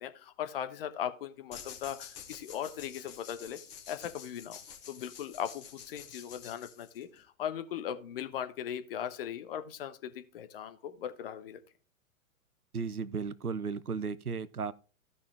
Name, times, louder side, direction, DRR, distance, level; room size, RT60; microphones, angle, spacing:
voice 1, 0.0-3.6 3.9-11.6, left 9 dB, 40° left, 1.1 m, -39 dB
sound 1, 1.5-7.2, left 8 dB, 25° left, 2.4 m, -49 dB
voice 2, 12.7-14.7, right 5 dB, 85° right, 0.7 m, -35 dB
15.0 x 5.6 x 3.3 m
figure-of-eight pair, 115°, 43 cm